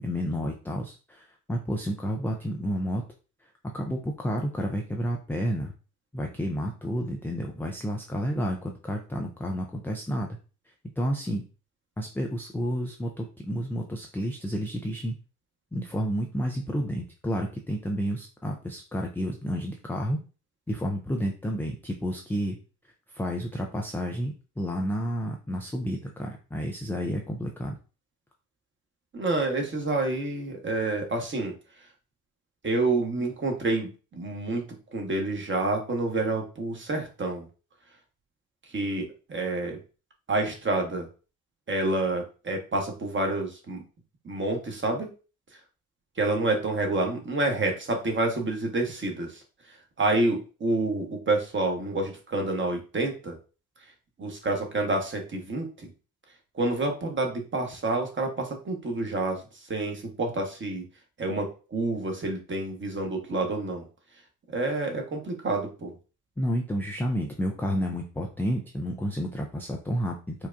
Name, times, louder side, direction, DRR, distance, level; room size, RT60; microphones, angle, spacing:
voice 1, 0.0-3.0 3.7-5.7 6.1-10.3 11.0-11.4 12.0-15.1 15.7-20.2 20.7-22.6 23.1-27.7 66.4-70.5, equal, 5° left, 1 dB, 0.4 m, -30 dB
voice 2, 29.1-31.5 32.6-34.7 34.9-37.4 38.7-39.8 40.3-41.1 41.7-43.8 44.2-45.1 46.2-49.4 50.0-53.4 54.2-55.9 56.5-59.4 59.7-60.8 61.2-63.9 64.5-65.9, right 2 dB, 25° right, 2 dB, 1.2 m, -28 dB
4.6 x 2.3 x 2.5 m, 0.35 s
hypercardioid pair, 60°, 46 cm